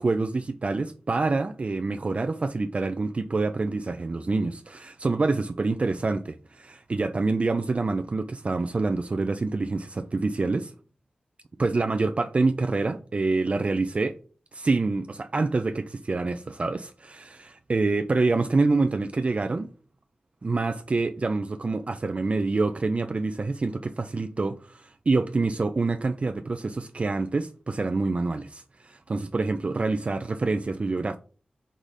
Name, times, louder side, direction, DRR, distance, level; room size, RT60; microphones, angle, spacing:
voice 1, 0.0-10.7 11.6-14.2 14.5-19.7 20.4-31.2, right 3 dB, 45° right, 0.4 m, -26 dB
4.7 x 4.0 x 2.6 m
cardioid pair, 45°, 3 cm